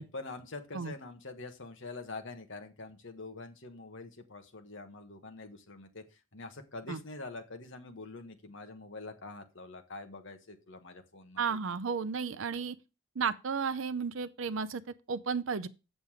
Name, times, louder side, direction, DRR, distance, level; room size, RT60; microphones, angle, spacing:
voice 1, 0.0-11.6, left 3 dB, 60° left, 1.4 m, -45 dB
voice 2, 11.4-12.8 13.2-15.7, right 5 dB, 65° right, 0.6 m, -33 dB
7.4 x 7.0 x 4.9 m
head